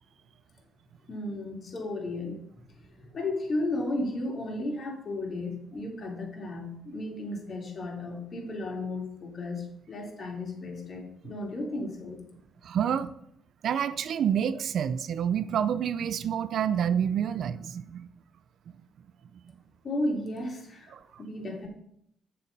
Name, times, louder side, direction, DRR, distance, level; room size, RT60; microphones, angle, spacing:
voice 1, 1.1-2.4 3.0-12.2 19.8-21.7, left 2 dB, 45° left, -1 dB, 3.5 m, -34 dB
voice 2, 12.6-13.1 13.6-18.1 20.9-21.0, right 8 dB, 65° right, 14 dB, 0.6 m, -28 dB
9.3 x 6.8 x 5.4 m, 0.74 s
cardioid pair, 90°, 0 cm